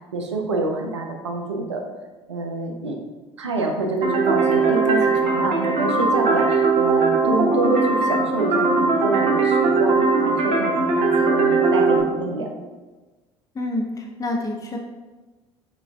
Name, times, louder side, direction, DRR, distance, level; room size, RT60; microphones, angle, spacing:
voice 1, 0.1-1.8 2.3-3.0 3.4-12.5, right 2 dB, 90° right, 2 dB, 0.5 m, -27 dB
sound 1, 4.0-12.0, right 4 dB, 50° right, 0.8 m, -19 dB
voice 2, 13.5-14.8, left 2 dB, 25° left, 0 dB, 0.6 m, -27 dB
5.5 x 2.3 x 2.3 m, 1.2 s
figure-of-eight pair, 60°, 14 cm